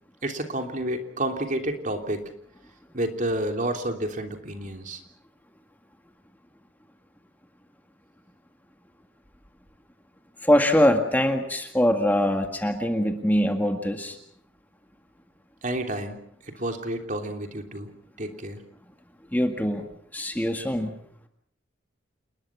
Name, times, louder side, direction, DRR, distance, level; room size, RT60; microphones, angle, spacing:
voice 1, 0.2-2.3 2.9-5.0 15.6-16.2 16.5-17.9 18.2-18.6, right 1 dB, 40° right, 4 dB, 3.2 m, -30 dB
voice 2, 10.4-14.2 19.3-20.9, equal, 10° left, 5 dB, 1.9 m, -23 dB
28.5 x 20.5 x 6.2 m, 0.67 s
head